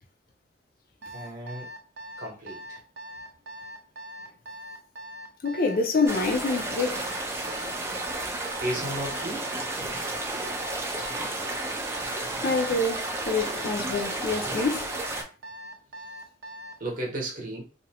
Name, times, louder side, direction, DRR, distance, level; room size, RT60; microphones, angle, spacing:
Alarm, 1.0-16.8, equal, 65° right, 0.5 m, -41 dB
voice 1, 1.1-1.7 2.2-2.8 8.5-9.5 9.8-9.9 16.8-17.6, right 1 dB, 45° right, 0.8 m, -34 dB
voice 2, 5.4-7.1 12.4-14.9, left 3 dB, 50° left, 0.4 m, -26 dB
sound 1, 6.1-15.2, right 2 dB, 15° right, 0.4 m, -32 dB
2.6 x 2.0 x 2.8 m
head